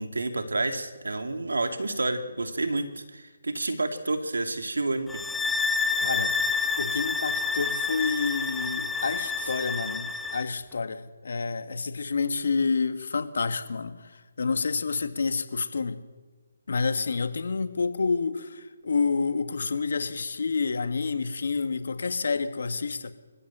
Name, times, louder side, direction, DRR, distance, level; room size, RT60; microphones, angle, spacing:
voice 1, 0.0-5.2 9.4-9.5, right 2 dB, 80° right, 2.8 m, -29 dB
sound 1, 5.1-10.5, left 4 dB, 5° left, 0.7 m, -29 dB
voice 2, 6.0-6.4 6.8-14.0 14.4-16.0 16.7-23.1, left 4 dB, 65° left, 1.9 m, -29 dB
26.5 x 15.0 x 7.5 m
figure-of-eight pair, 150°, 0 cm